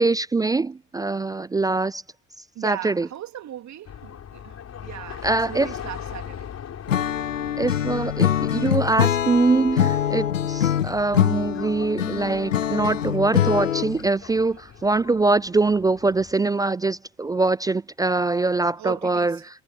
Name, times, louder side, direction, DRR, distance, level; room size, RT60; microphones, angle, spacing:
voice 1, 0.0-2.0 2.6-3.1 5.2-5.7 7.6-19.4, right 3 dB, 10° right, 0.3 m, -23 dB
voice 2, 2.5-6.5 18.4-19.5, right 12 dB, 45° right, 3.0 m, -38 dB
sound 1, 3.8-16.4, left 8 dB, 40° left, 5.5 m, -41 dB
Acoustic guitar / Strum, 6.9-14.1, left 10 dB, 85° left, 0.9 m, -24 dB
figure-of-eight pair, 55°, 37 cm